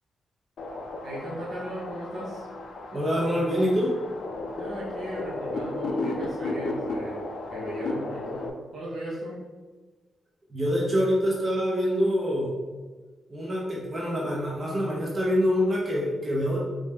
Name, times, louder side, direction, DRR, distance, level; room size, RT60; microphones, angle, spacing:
sound 1, 0.6-8.5, left 2 dB, 70° left, 0.4 m, -34 dB
voice 1, 1.0-2.5 4.6-9.4, right 1 dB, 70° right, -6 dB, 0.9 m, -37 dB
voice 2, 2.9-4.0 10.5-12.5 13.3-16.6, equal, 35° right, -4 dB, 0.7 m, -25 dB
3.2 x 2.6 x 3.5 m, 1.3 s
cardioid pair, 85°, 0 cm